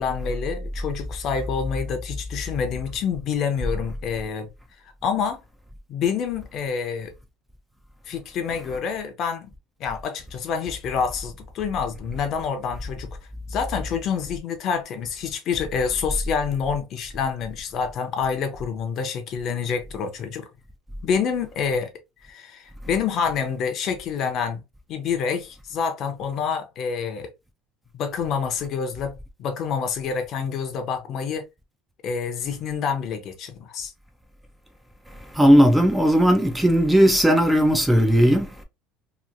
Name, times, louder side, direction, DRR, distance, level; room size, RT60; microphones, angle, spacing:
voice 1, 0.0-4.5 5.0-5.4 5.9-7.1 8.1-9.5 9.8-13.1 13.5-20.5 21.0-21.9 22.3-24.6 24.9-27.3 27.9-31.5 32.0-33.9, left 6 dB, 45° left, 0.7 m, -27 dB
voice 2, 35.4-38.5, equal, 5° right, 0.4 m, -17 dB
2.9 x 2.4 x 2.5 m
cardioid pair, 140°, 0 cm